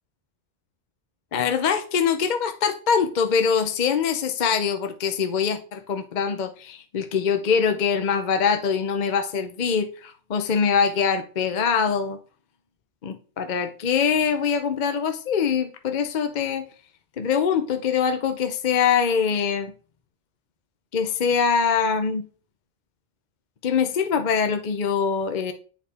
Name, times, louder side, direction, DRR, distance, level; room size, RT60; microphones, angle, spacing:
voice 1, 1.3-12.2 13.0-16.6 17.2-19.7 20.9-22.2 23.6-25.5, left 6 dB, 50° left, 0.7 m, -23 dB
8.3 x 5.0 x 3.4 m
omnidirectional pair, 1.1 m